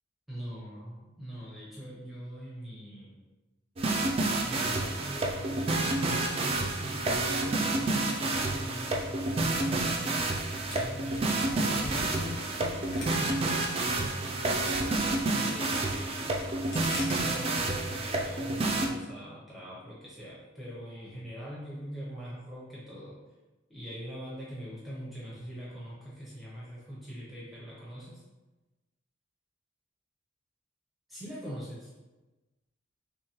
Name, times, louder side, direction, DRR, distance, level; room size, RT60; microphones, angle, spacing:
voice 1, 0.3-3.2 4.3-14.4 15.3-16.4 17.0-23.2 23.7-28.2 31.1-31.9, equal, ahead, -7 dB, 0.7 m, -42 dB
sound 1, 3.8-18.9, right 2 dB, 30° right, 0.3 m, -29 dB
sound 2, 10.7-13.6 14.0-15.2 15.5-16.0 16.4-17.5, left 1 dB, 65° left, 1.1 m, -41 dB
3.6 x 3.1 x 3.0 m, 1.1 s
head